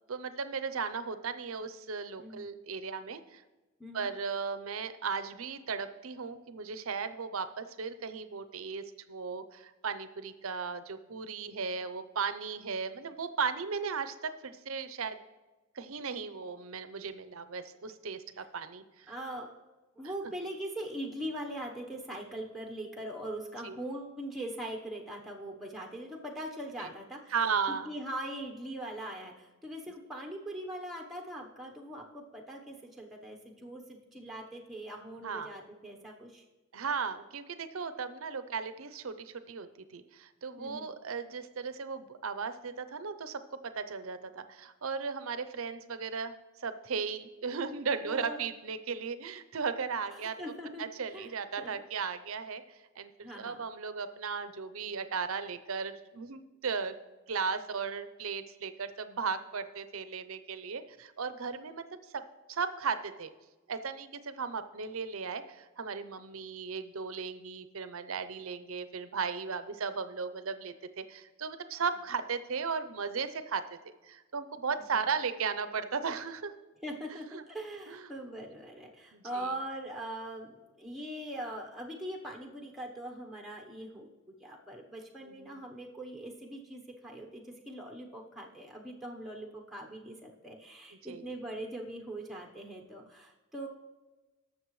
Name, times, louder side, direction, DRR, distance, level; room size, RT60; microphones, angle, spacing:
voice 1, 0.1-3.4 3.9-15.2 15.7-19.1 23.6-23.8 26.8-26.9 27.3-27.9 35.2-35.5 36.7-50.4 50.8-56.9 57.3-61.8 62.1-62.2 62.5-63.3 63.7-73.8 74.1-76.5 77.3-77.4 77.9-78.1 79.1-79.6 85.2-85.6 91.0-91.3, right 5 dB, 70° right, 11 dB, 0.7 m, -36 dB
voice 2, 19.1-19.5 20.0-27.3 27.7-36.4 40.6-40.9 48.0-48.5 50.1-51.3 51.6-51.8 53.2-53.6 74.9-75.0 76.8-84.1 84.4-93.7, right 1 dB, ahead, 0 dB, 0.9 m, -41 dB
20.0 x 6.6 x 3.2 m, 1.1 s
head